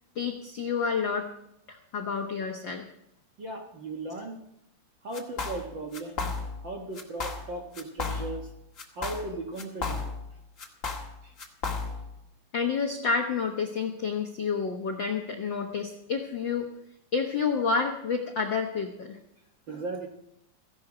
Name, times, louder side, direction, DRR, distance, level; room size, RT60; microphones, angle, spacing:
voice 1, 0.1-1.3 1.7-2.8 12.5-16.7 17.1-19.2, left 5 dB, 75° left, 3 dB, 1.0 m, -29 dB
voice 2, 3.4-4.4 5.0-6.3 6.6-8.5 8.9-10.1 11.2-11.3 19.7-20.1, right 2 dB, 50° right, 2 dB, 1.5 m, -37 dB
sound 1, 5.1-5.7 5.9-6.7 6.9-7.5 7.7-8.5 8.8-10.3 10.6-12.1, left 4 dB, 35° left, 1.4 m, -33 dB
17.0 x 15.0 x 5.0 m, 0.81 s
omnidirectional pair, 3.9 m